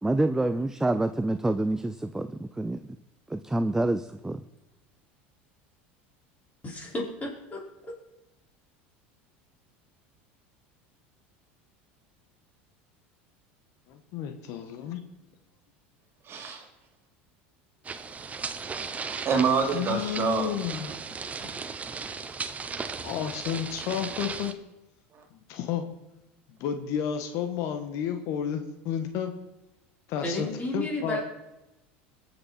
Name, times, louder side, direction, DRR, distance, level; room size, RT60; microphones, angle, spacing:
voice 1, 0.0-2.8 3.3-4.4, right 2 dB, 10° right, 10 dB, 0.6 m, -27 dB
voice 2, 6.6-7.6 30.2-31.2, left 1 dB, 25° left, -2 dB, 5.3 m, -32 dB
voice 3, 13.9-15.0 19.7-20.9 21.4-21.5 23.0-24.6 25.3-25.9 26.5-29.3 30.1-30.5 30.7-31.2, left 8 dB, 60° left, 7 dB, 1.4 m, -31 dB
voice 4, 16.3-16.6 18.8-20.5, right 5 dB, 45° right, 3 dB, 2.9 m, -27 dB
sound 1, 17.8-24.5, right 5 dB, 25° right, 1.0 m, -36 dB
21.5 x 7.7 x 4.5 m, 0.97 s
hypercardioid pair, 90°, 6 cm